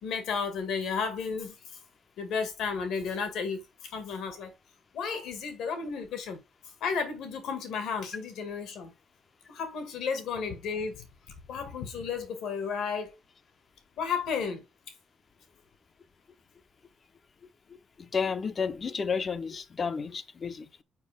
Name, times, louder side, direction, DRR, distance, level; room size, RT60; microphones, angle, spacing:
voice 1, 0.0-1.6 2.2-3.6 3.9-4.5 4.9-6.4 6.8-8.9 9.5-11.1 11.5-13.2 14.0-14.6, left 5 dB, 80° left, 1.9 m, -33 dB
voice 2, 17.7-20.8, left 5 dB, 40° left, 0.8 m, -32 dB
6.7 x 4.7 x 3.5 m
cardioid pair, 90°, 0 cm